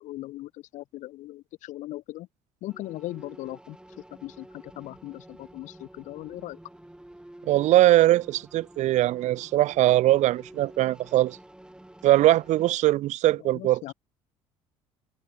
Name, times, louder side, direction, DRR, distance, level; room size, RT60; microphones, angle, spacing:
voice 1, 0.0-2.3 2.6-3.8 4.2-6.6 13.4-13.9, left 16 dB, 70° left, 0.8 m, -39 dB
sound 1, 2.7-12.7, right 1 dB, 5° right, 7.8 m, -50 dB
voice 2, 7.5-11.4 12.0-13.8, right 15 dB, 60° right, 0.7 m, -21 dB
supercardioid pair, 80°, 13 cm